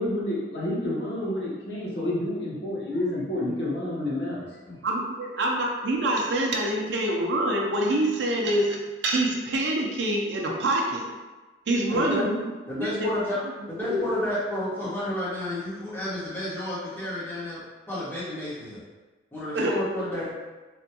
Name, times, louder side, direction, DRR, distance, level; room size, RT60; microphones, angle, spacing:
voice 1, 0.0-4.5, left 1 dB, 65° left, -6 dB, 1.0 m, -29 dB
voice 2, 4.8-11.1 11.7-12.4 12.8-13.1 13.8-14.0 19.5-20.0, right 1 dB, 70° right, 0 dB, 0.5 m, -26 dB
voice 3, 11.9-12.2 12.7-13.4 13.7-17.6 17.9-18.8 19.3-20.3, left 1 dB, 10° left, -10 dB, 1.1 m, -31 dB
3.4 x 2.2 x 2.8 m, 1.2 s
head